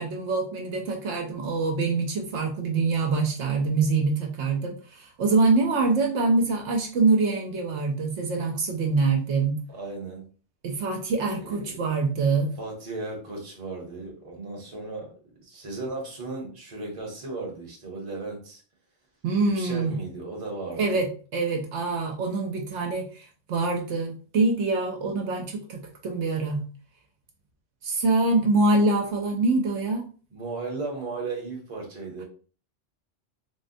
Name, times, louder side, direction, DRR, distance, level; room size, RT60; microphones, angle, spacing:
voice 1, 0.0-9.5 10.6-12.5 19.2-20.0 20.8-21.1 21.3-26.6 27.8-30.0, right 3 dB, 70° right, 1 dB, 0.9 m, -25 dB
voice 2, 9.7-10.3 11.4-11.8 12.6-15.1 15.4-18.6 19.4-21.0 30.3-32.2, right 3 dB, 30° right, -1 dB, 0.8 m, -36 dB
3.5 x 2.1 x 2.6 m, 0.40 s
omnidirectional pair, 1.2 m